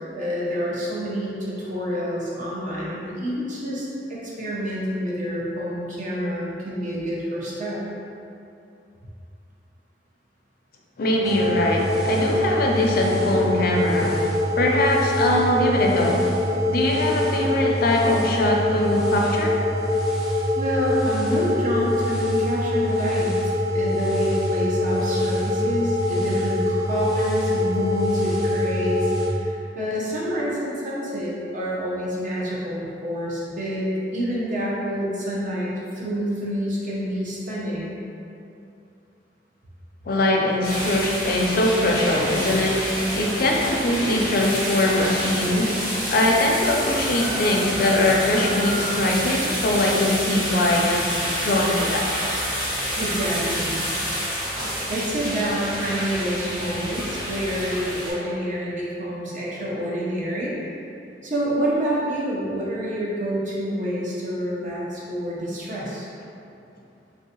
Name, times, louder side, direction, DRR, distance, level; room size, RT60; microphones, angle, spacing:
voice 1, 0.1-7.8 20.6-23.3 23.7-33.9 34.1-35.7 35.9-38.0 53.0-53.8 54.9-60.6 61.2-66.1, equal, 50° right, -6 dB, 0.7 m, -27 dB
voice 2, 11.0-14.2 14.6-16.2 16.7-19.6 40.1-45.8 46.1-52.1, left 1 dB, 55° left, 0 dB, 0.4 m, -22 dB
sound 1, 11.2-29.3, left 1 dB, ahead, 0.5 m, -24 dB
sound 2, 40.6-58.1, equal, 25° right, 1.4 m, -28 dB
sound 3, 46.6-54.1, equal, 80° right, 1.4 m, -42 dB
3.3 x 2.6 x 2.8 m, 2.6 s
head